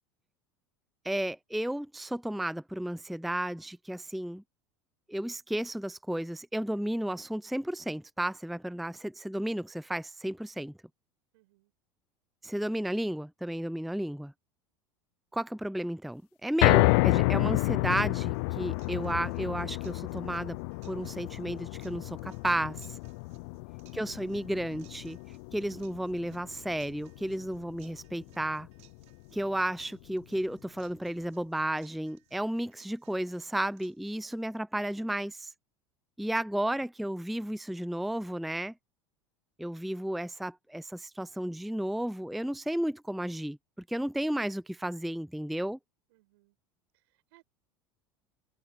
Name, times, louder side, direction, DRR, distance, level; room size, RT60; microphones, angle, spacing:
voice 1, 1.0-4.4 5.1-10.7 12.4-14.3 15.3-20.6 20.9-23.0 23.9-25.2 25.5-28.7 29.3-35.5 36.2-38.7 39.6-43.6 43.9-45.8, right 1 dB, ahead, 0.5 m, -33 dB
voice 2, 11.3-11.7 23.3-23.7 36.2-36.3 46.1-46.6 46.9-47.4, right 21 dB, 70° right, 7.8 m, -66 dB
sound 1, 16.6-28.9 29.3-29.4 29.8-29.9, left 28 dB, 65° left, 0.5 m, -30 dB
sound 2, 18.3-34.4, right 17 dB, 55° right, 5.7 m, -64 dB
hypercardioid pair, 85°, 14 cm